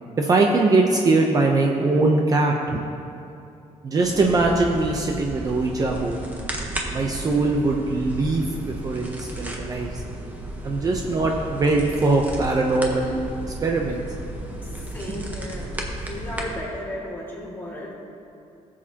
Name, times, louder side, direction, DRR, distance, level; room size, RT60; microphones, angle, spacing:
voice 1, 0.2-2.8 3.8-6.2 6.9-10.0 10.6-13.2 13.6-14.0, right 3 dB, 30° right, 1 dB, 0.7 m, -21 dB
sound 1, 4.0-16.6, right 1 dB, 15° right, 1.1 m, -34 dB
voice 2, 14.6-15.7 16.0-17.9, left 1 dB, 15° left, -5 dB, 2.1 m, -35 dB
17.0 x 7.4 x 2.9 m, 2.6 s
cardioid pair, 150°, 12 cm